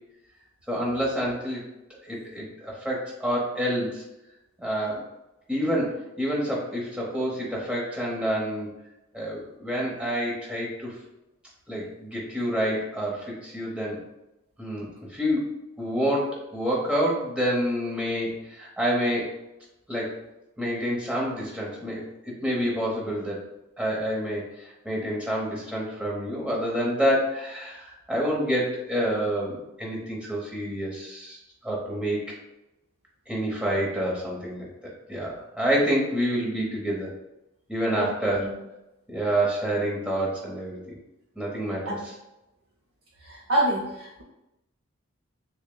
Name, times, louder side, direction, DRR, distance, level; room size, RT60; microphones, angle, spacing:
voice 1, 0.7-1.6 2.1-4.0 4.6-5.0 5.5-8.7 9.1-10.9 11.7-14.0 14.6-19.3 19.9-20.1 20.6-23.4 23.8-31.4 31.6-32.3 33.3-34.7 35.1-37.1 37.7-38.6 39.1-41.0 41.4-42.0, equal, 5° right, -4 dB, 0.9 m, -28 dB
voice 2, 43.2-44.2, right 1 dB, 70° right, -4 dB, 0.6 m, -27 dB
6.3 x 2.2 x 2.2 m, 0.92 s
head